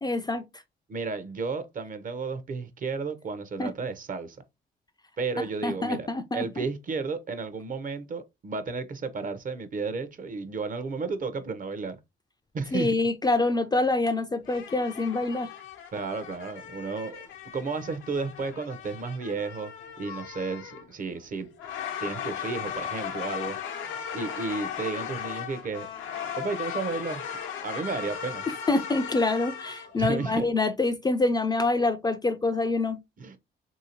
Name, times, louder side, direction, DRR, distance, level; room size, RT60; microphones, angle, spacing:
voice 1, 0.0-0.4 3.6-3.7 5.6-6.6 12.7-15.5 28.7-33.0, left 2 dB, 20° left, 0.3 m, -26 dB
voice 2, 0.9-4.4 5.2-6.1 6.3-12.0 12.5-12.9 15.9-17.2 17.5-21.5 22.0-23.6 24.1-25.9 26.4-27.2 27.6-28.4 30.0-30.4 33.2-33.4, right 4 dB, 45° right, 0.6 m, -33 dB
sound 1, 14.4-30.0, left 8 dB, 90° left, 0.7 m, -37 dB
3.2 x 2.7 x 2.8 m
cardioid pair, 90°, 20 cm